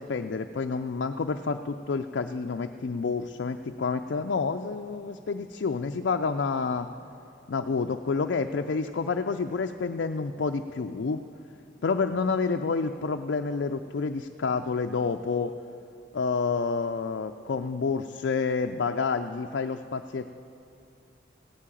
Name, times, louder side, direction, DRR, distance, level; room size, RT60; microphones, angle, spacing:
voice 1, 0.0-6.9 7.5-11.2 11.8-15.5 16.1-20.3, left 4 dB, 70° left, 5 dB, 0.4 m, -29 dB
15.5 x 8.5 x 9.0 m, 2.6 s
head